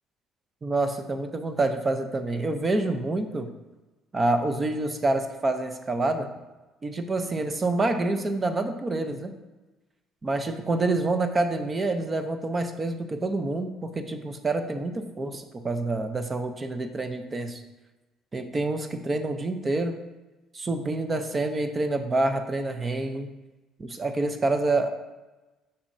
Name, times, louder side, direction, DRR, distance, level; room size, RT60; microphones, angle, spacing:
voice 1, 0.6-3.5 4.1-6.3 6.8-9.4 10.2-17.6 18.3-20.0 20.5-23.3 23.8-24.9, right 2 dB, 30° right, 7 dB, 0.6 m, -27 dB
6.8 x 5.6 x 2.7 m, 1.1 s
supercardioid pair, 70°, 0 cm